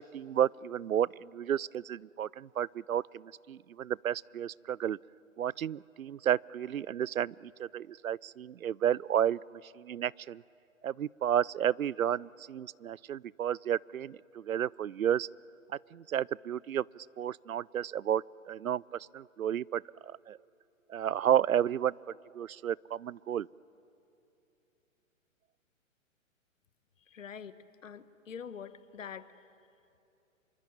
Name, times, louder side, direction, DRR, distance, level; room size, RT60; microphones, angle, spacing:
voice 1, 0.0-5.0 5.4-9.4 9.8-10.4 10.8-15.3 15.9-18.8 19.1-20.4 20.9-21.9 22.3-23.5, right 10 dB, 85° right, 25 dB, 0.5 m, -32 dB
voice 2, 27.1-29.3, left 7 dB, 70° left, 13 dB, 1.4 m, -45 dB
26.0 x 23.0 x 8.8 m, 2.7 s
figure-of-eight pair, 125°, 41 cm